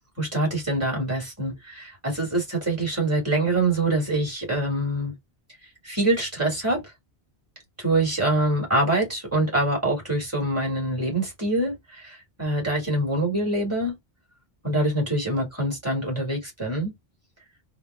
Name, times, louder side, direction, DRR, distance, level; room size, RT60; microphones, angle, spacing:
voice 1, 0.2-5.1 5.8-6.8 7.8-13.9 14.6-16.9, right 1 dB, 15° right, 1.8 m, -25 dB
3.4 x 2.1 x 3.3 m
omnidirectional pair, 1.1 m